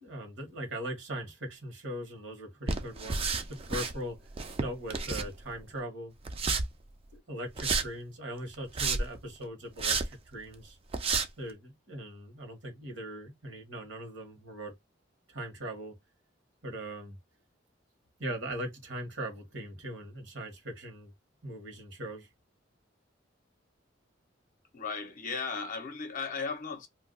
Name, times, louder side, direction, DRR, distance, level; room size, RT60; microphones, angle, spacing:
voice 1, 0.0-4.2 4.6-6.1 7.1-10.8 11.4-14.7 15.3-15.9 16.6-17.2 18.2-21.1 21.4-22.3, right 1 dB, 65° right, 1.3 m, -40 dB
sound 1, 2.7-3.9 4.3-5.6 6.2-6.6 7.6-7.9 8.5-9.2 9.8-10.1 10.5-10.6 10.9-11.3, right 4 dB, 30° right, 0.4 m, -30 dB
voice 2, 24.7-26.9, left 5 dB, 45° left, 0.6 m, -36 dB
2.5 x 2.2 x 3.7 m
head